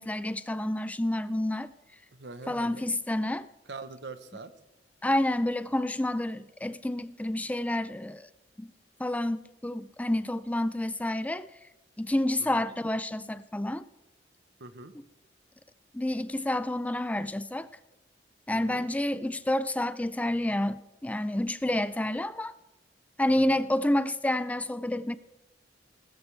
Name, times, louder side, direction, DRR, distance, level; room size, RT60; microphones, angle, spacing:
voice 1, 0.0-1.7 2.5-3.5 5.0-8.3 8.6-8.7 9.0-11.5 12.0-13.8 15.9-17.7 18.5-22.5 23.2-25.1, left 1 dB, 10° left, 0.3 m, -29 dB
voice 2, 2.1-2.9 3.7-4.5 12.4-12.7 14.6-14.9 18.5-18.9 23.4-23.6, right 3 dB, 70° right, 1.0 m, -43 dB
19.5 x 13.0 x 3.3 m
head